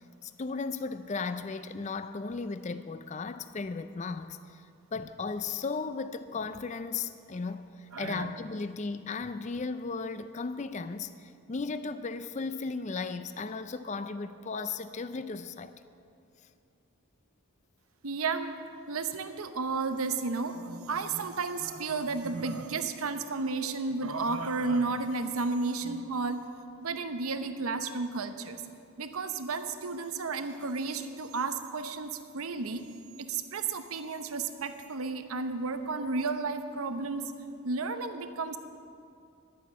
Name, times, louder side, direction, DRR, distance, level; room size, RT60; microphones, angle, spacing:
voice 1, 0.2-4.6 4.9-15.7, left 4 dB, 30° left, 11 dB, 0.4 m, -36 dB
voice 2, 7.9-8.3 18.0-18.5 18.9-26.4 26.8-28.6 29.0-32.8 33.2-37.3 37.6-38.6, right 4 dB, 75° right, 9 dB, 0.8 m, -32 dB
11.0 x 9.1 x 7.3 m, 2.5 s
head